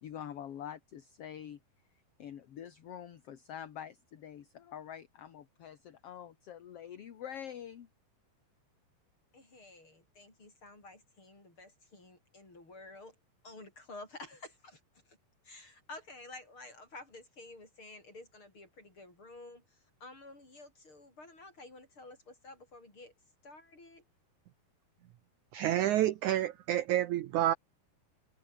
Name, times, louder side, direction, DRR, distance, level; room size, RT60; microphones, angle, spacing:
voice 1, 0.0-1.6 2.2-7.9, left 9 dB, 50° left, 2.0 m, -46 dB
voice 2, 9.3-13.2 13.4-15.2 15.4-23.1 23.4-24.0, left 2 dB, 30° left, 8.5 m, -51 dB
voice 3, 25.5-27.5, right 13 dB, 75° right, 1.9 m, -29 dB
omnidirectional pair, 4.4 m